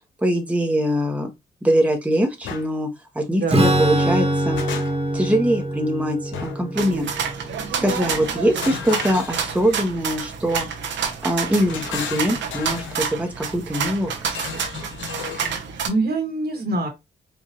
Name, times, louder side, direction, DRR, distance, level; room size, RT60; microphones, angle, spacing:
voice 1, 0.2-1.3 1.6-2.9 3.1-4.6 5.1-7.1 7.4-7.5 7.8-10.7 11.2-14.1, equal, 5° right, 1.0 m, -22 dB
sound 1, 2.4-2.7 4.1-5.2 6.3-6.8 8.1-9.9 11.2-13.0 14.3-15.6, left 7 dB, 90° left, 0.8 m, -34 dB
Strum, 3.5-9.1, right 1 dB, 35° right, 1.3 m, -24 dB
sound 2, 6.7-15.9, right 6 dB, 80° right, 0.9 m, -29 dB
voice 2, 15.8-16.9, right 2 dB, 55° right, 1.5 m, -24 dB
4.8 x 2.5 x 2.9 m
cardioid pair, 70°, 19 cm